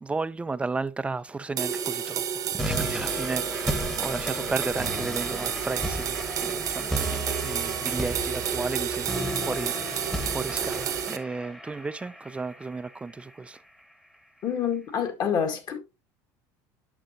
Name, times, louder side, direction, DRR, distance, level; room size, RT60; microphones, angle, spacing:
voice 1, 0.0-13.6, right 3 dB, 15° right, 0.5 m, -34 dB
sound 1, 1.6-11.2, right 8 dB, 45° right, 1.0 m, -31 dB
sound 2, 2.6-13.6, equal, 5° left, 1.2 m, -34 dB
voice 2, 14.4-15.8, left 7 dB, 45° left, 1.8 m, -27 dB
9.1 x 6.2 x 2.8 m
supercardioid pair, 115°, 9 cm